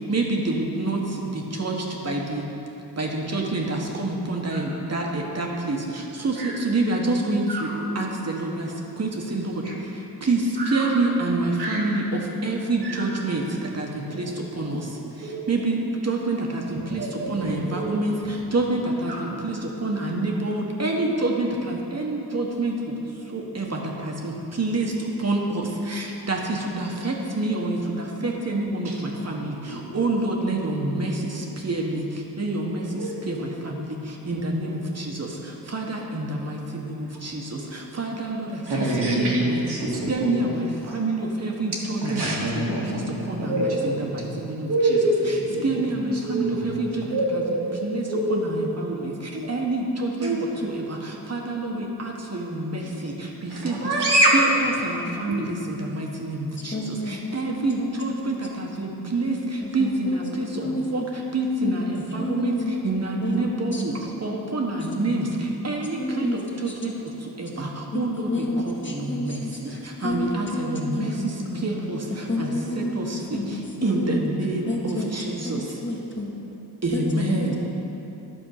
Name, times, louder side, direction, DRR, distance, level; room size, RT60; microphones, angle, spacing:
voice 1, 0.0-2.4 3.0-7.7 7.9-23.0 23.2-38.9 39.2-39.6 40.1-45.0 45.3-45.4 45.6-53.9 54.3-66.9 67.2-72.5 72.8-75.8 76.8-77.6, right 2 dB, 40° right, 0 dB, 1.3 m, -28 dB
voice 2, 7.5-8.0 9.6-9.7 10.6-10.9 11.6-11.8 12.8-13.1 14.1-14.3 15.2-15.5 16.7-17.9 19.1-19.4 28.9-29.0 29.7-29.8 33.0-33.2 38.7-40.5 40.9-41.0 42.0-44.1 44.7-45.8 46.2-47.8 48.1-48.5 49.3-49.5 50.2-50.5 52.8-52.9 53.5-54.4 55.2-55.5, right 1 dB, 70° right, -4 dB, 1.9 m, -26 dB
voice 3, 55.1-55.4 56.7-58.4 59.6-61.3 61.6-61.9 62.2-62.7 63.2-63.4 63.7-63.8 66.0-67.0 67.9-71.7 72.3-72.9 73.3-73.5 73.8-74.3 74.7-75.1 75.4-76.3 76.9-77.6, left 1 dB, 30° left, -2 dB, 1.5 m, -30 dB
10.0 x 4.4 x 6.6 m, 3.0 s
cardioid pair, 65°, 42 cm